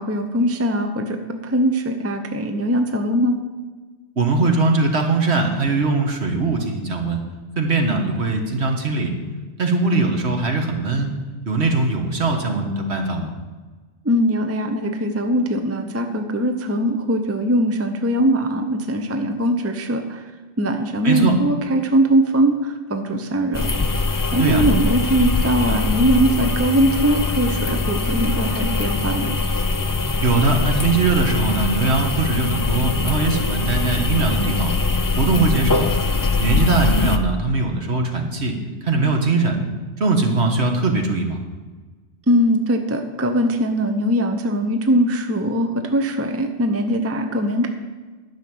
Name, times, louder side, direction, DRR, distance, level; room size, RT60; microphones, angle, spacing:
voice 1, 0.0-3.4 14.0-20.2 20.6-23.7 24.3-29.3 42.3-47.7, right 1 dB, 15° right, 6 dB, 0.7 m, -21 dB
voice 2, 4.2-7.2 7.6-9.1 9.6-11.1 11.4-13.3 21.0-21.3 24.4-24.6 30.2-34.7 35.2-35.9 36.4-38.6 38.8-39.6 40.0-41.4, right 3 dB, 65° right, 3 dB, 1.7 m, -20 dB
sound 1, 23.5-37.2, left 3 dB, 30° left, 0.3 m, -22 dB
11.0 x 6.6 x 7.8 m, 1.3 s
omnidirectional pair, 1.2 m